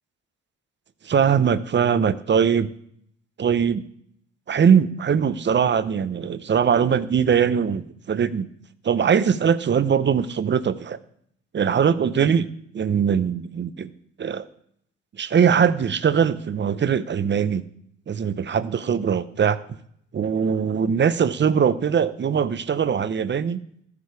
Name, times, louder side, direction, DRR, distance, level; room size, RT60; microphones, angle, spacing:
voice 1, 1.0-2.7 3.4-3.8 4.5-8.5 8.8-11.0 11.5-12.5 12.7-13.9 14.2-14.5 15.2-17.6 18.1-19.6 20.1-23.6, right 7 dB, 40° right, 15 dB, 0.7 m, -21 dB
14.0 x 8.3 x 4.8 m, 0.69 s
cardioid pair, 90°, 30 cm